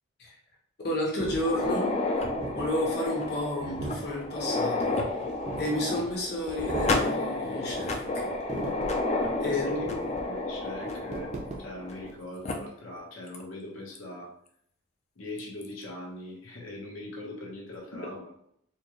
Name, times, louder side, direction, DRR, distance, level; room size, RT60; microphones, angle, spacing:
voice 1, 0.8-1.9 2.5-4.9 5.6-8.3 9.4-9.8, left 1 dB, 50° left, -2 dB, 1.2 m, -31 dB
sound 1, 1.2-12.1, right 2 dB, 30° right, 0.5 m, -40 dB
sound 2, 1.3-12.1 12.4-12.5 13.3-13.4 14.0-14.1 15.4-15.7, left 2 dB, 30° left, 0.4 m, -31 dB
voice 2, 9.5-9.9 10.3-14.3 15.1-18.3, left 1 dB, 75° left, -2 dB, 1.3 m, -41 dB
4.4 x 2.4 x 3.1 m, 0.68 s
head